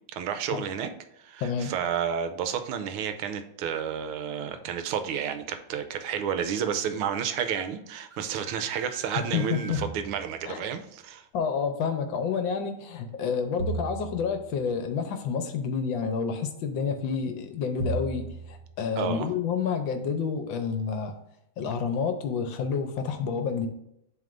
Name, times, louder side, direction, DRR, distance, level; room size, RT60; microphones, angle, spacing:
voice 1, 0.1-0.9 1.2-11.2 19.0-19.3, right 8 dB, 85° right, 8 dB, 1.5 m, -31 dB
voice 2, 1.4-1.7 9.2-9.9 10.4-10.6 11.3-21.1 21.6-23.7, left 6 dB, 70° left, 7 dB, 1.4 m, -29 dB
sound 1, 7.4-7.7 8.1-9.9, right 3 dB, 65° right, 0.7 m, -47 dB
sound 2, 9.7-10.5 13.6-14.7 17.8-18.7, right 3 dB, 50° right, 1.8 m, -35 dB
10.5 x 3.6 x 2.5 m, 0.81 s
omnidirectional pair, 2.3 m